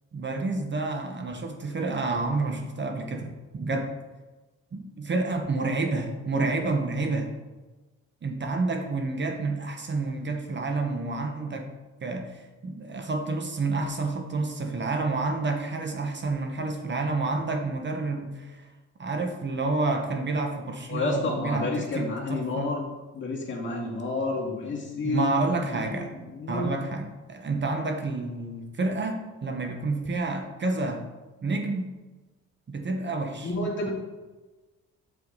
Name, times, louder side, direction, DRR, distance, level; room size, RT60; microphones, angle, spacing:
voice 1, 0.1-3.9 4.7-7.3 8.2-11.7 12.0-18.7 19.0-22.7 25.0-26.1 26.5-31.0 31.4-31.9 32.7-33.5 33.8-33.9, right 3 dB, 35° right, 4 dB, 1.0 m, -29 dB
voice 2, 20.9-22.8 23.1-25.3 25.7-26.7 33.4-33.9, left 2 dB, 40° left, -3 dB, 2.1 m, -30 dB
7.2 x 5.8 x 3.9 m, 1.2 s
cardioid pair, 90°, 30 cm